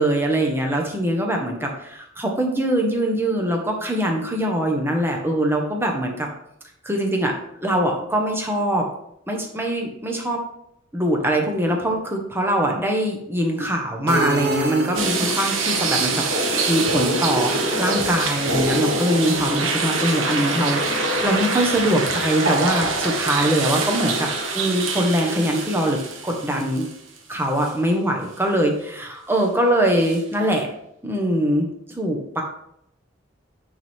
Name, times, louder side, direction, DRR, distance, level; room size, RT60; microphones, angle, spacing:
voice 1, 0.0-6.3 6.8-7.3 7.6-8.8 9.3-10.4 10.9-17.5 17.8-24.3 24.5-26.8 27.3-30.7 31.0-31.7 31.9-32.4, right 1 dB, 10° right, 1 dB, 1.3 m, -22 dB
sound 1, 14.1-15.6, right 2 dB, 55° right, 0.9 m, -26 dB
sound 2, 14.9-27.2 27.6-27.7 30.0-30.2, right 2 dB, 85° right, 1.3 m, -24 dB
9.4 x 4.6 x 3.6 m, 0.73 s
head